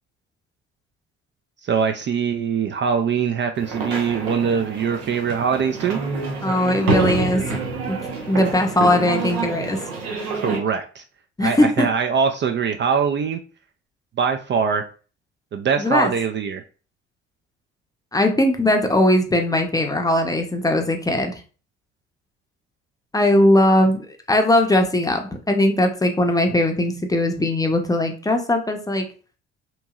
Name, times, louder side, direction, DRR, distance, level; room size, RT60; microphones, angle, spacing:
voice 1, 1.6-6.0 10.3-11.0 11.4-13.4 14.2-14.8 15.5-16.6, right 6 dB, 40° right, 6 dB, 0.4 m, -22 dB
sound 1, 3.6-10.6, right 4 dB, 85° right, 0.8 m, -27 dB
voice 2, 6.4-7.6 7.9-8.0 8.3-9.8 10.1-10.3 11.4-11.9 15.8-16.1 18.1-21.4 23.1-24.0 24.3-29.1, left 1 dB, 10° left, 3 dB, 0.6 m, -19 dB
2.9 x 2.6 x 2.3 m, 0.37 s
hypercardioid pair, 55°, 30 cm